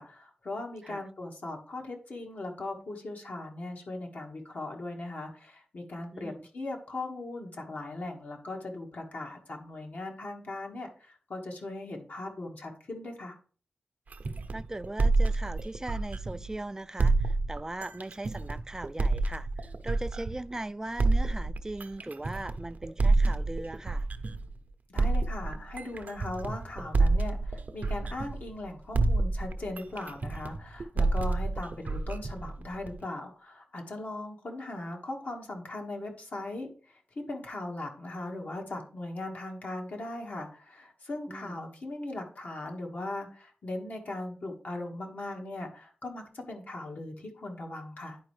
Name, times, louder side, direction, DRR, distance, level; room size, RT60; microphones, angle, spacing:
voice 1, 0.0-13.4 24.9-36.7 37.1-48.2, left 2 dB, 65° left, 1.6 m, -39 dB
voice 2, 6.1-6.5 14.5-19.5 19.8-24.1 41.3-41.6, right 2 dB, 20° right, 0.3 m, -39 dB
sound 1, 14.1-16.5 17.0-20.5 21.0-24.5 25.0-28.6 28.9-33.0, right 3 dB, 60° right, 0.7 m, -28 dB
10.5 x 4.4 x 3.2 m
cardioid pair, 50°, 3 cm